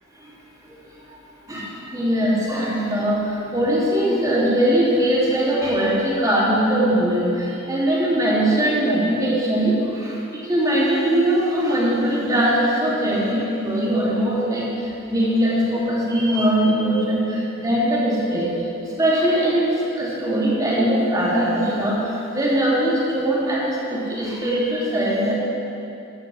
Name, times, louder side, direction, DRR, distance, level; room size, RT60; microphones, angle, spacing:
voice 1, 1.5-14.6 15.1-18.5 18.8-19.7 19.9-25.3, right 1 dB, 15° right, -7 dB, 2.8 m, -21 dB
12.5 x 5.6 x 8.5 m, 2.8 s
head